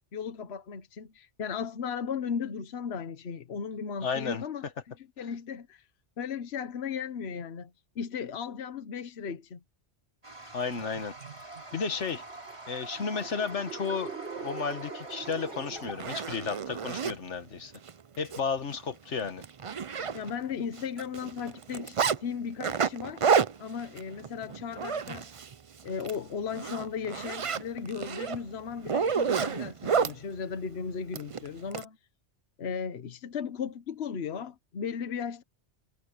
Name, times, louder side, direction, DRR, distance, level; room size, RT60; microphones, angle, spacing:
voice 1, 0.0-4.7 5.0-5.8 6.2-9.6 20.1-23.2 23.6-25.3 25.8-32.0 32.6-35.4, left 6 dB, 65° left, 1.2 m, -36 dB
voice 2, 4.0-4.4 10.5-11.1 11.7-12.2 12.7-17.7 18.2-19.4, left 5 dB, 80° left, 1.6 m, -33 dB
Toilet flush, 10.2-15.9, right 2 dB, 25° right, 4.3 m, -47 dB
sound 1, 10.7-16.5, right 5 dB, 65° right, 2.5 m, -43 dB
Zipper (clothing), 15.3-15.4 15.8-17.2 17.7-17.9 18.2-18.4 18.7-18.8 19.2-20.5 20.8-22.2 22.6-25.5 25.9-26.2 26.5-30.2 31.1-31.8, right 6 dB, 40° right, 0.5 m, -30 dB
omnidirectional pair, 1.2 m